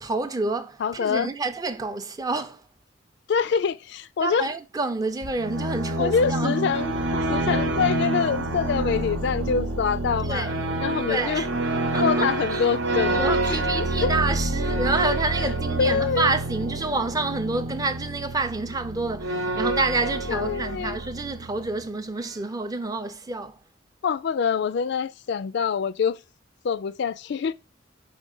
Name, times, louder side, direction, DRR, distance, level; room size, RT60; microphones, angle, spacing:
voice 1, 0.0-2.6 4.2-6.6 10.2-10.6 11.1-11.5 11.9-12.7 13.1-23.6, right 3 dB, 20° right, 0.4 m, -28 dB
voice 2, 0.8-1.3 3.3-4.5 6.0-6.9 7.3-10.5 10.8-11.4 12.0-14.1 15.8-16.3 20.3-21.0 24.0-26.2 26.6-27.5, left 6 dB, 60° left, 0.3 m, -25 dB
sound 1, 5.2-21.9, right 2 dB, 80° right, 0.9 m, -27 dB
5.1 x 3.6 x 5.3 m
head